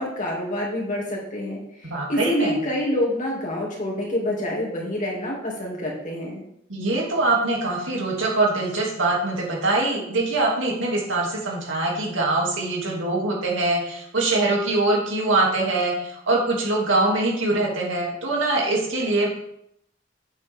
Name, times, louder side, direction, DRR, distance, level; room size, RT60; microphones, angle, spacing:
voice 1, 0.0-6.4, left 1 dB, 40° left, -3 dB, 2.6 m, -27 dB
voice 2, 1.8-2.6 6.7-19.3, right 2 dB, 70° right, -2 dB, 2.7 m, -23 dB
8.5 x 7.7 x 3.6 m, 0.75 s
head